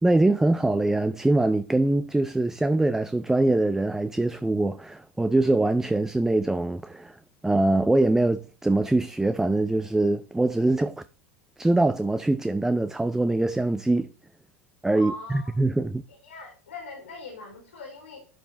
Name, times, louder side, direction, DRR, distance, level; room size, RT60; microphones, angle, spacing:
voice 1, 0.0-7.2 7.4-11.0 11.6-14.1 14.8-16.0, right 2 dB, 5° right, 0.5 m, -23 dB
voice 2, 14.9-15.6 16.1-18.3, left 2 dB, 80° left, 3.1 m, -41 dB
11.5 x 5.1 x 3.3 m
figure-of-eight pair, 85°, 7 cm